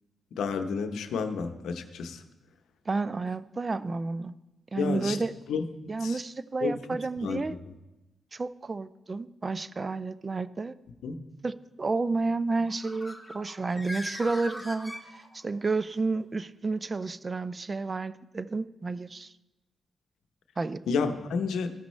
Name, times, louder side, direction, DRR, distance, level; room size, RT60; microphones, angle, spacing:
voice 1, 0.3-2.2 4.8-5.2 5.5-5.6 6.0-6.2 6.6-6.7 7.2-7.4 11.0-11.2 20.9-21.7, left 5 dB, 85° left, 7 dB, 0.7 m, -30 dB
voice 2, 2.9-4.3 4.7-5.3 5.9-7.6 8.3-10.7 11.4-11.5 11.8-14.9 15.3-19.3 20.6-20.8, right 3 dB, 35° right, 15 dB, 0.4 m, -31 dB
Bird, 12.6-15.6, left 1 dB, 10° left, 1.0 m, -41 dB
15.0 x 6.1 x 3.1 m, 1.0 s
cardioid pair, 75°, 0 cm